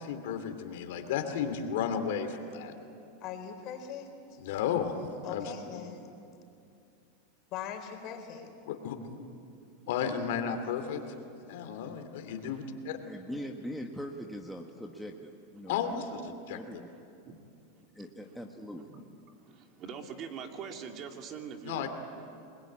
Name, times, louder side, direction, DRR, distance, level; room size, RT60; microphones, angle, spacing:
voice 1, 0.0-2.7 4.4-4.9 5.3-5.5 8.7-9.2 9.9-11.0 11.5-13.0 15.7-16.8 21.6-21.9, left 7 dB, 70° left, 7 dB, 2.7 m, -33 dB
voice 2, 3.2-4.1 5.2-6.1 7.5-8.5, left 8 dB, 45° left, 5 dB, 4.3 m, -40 dB
voice 3, 10.7-11.1 12.3-12.7 15.9-16.0 16.5-16.6 16.9-17.4 17.7-18.4 18.9-19.0 19.4-21.9, right 6 dB, 35° right, 4 dB, 2.6 m, -45 dB
voice 4, 13.0-16.9 17.9-18.9, equal, ahead, 0 dB, 1.4 m, -42 dB
28.5 x 21.5 x 8.8 m, 2.6 s
supercardioid pair, 135°, 0 cm